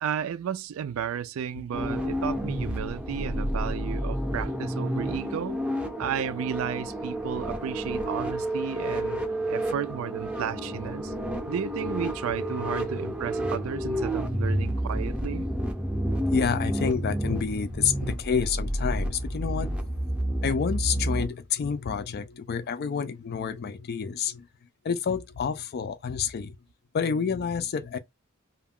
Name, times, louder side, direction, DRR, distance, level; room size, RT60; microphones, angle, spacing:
voice 1, 0.0-5.6 6.0-9.2 9.5-11.1 11.5-15.5, right 8 dB, 70° right, 0.3 m, -33 dB
sound 1, 1.7-21.2, equal, 5° right, 0.6 m, -30 dB
voice 2, 16.3-20.2 20.4-24.5 24.8-26.6 26.9-28.0, left 6 dB, 50° left, 0.4 m, -29 dB
2.3 x 2.2 x 3.4 m
head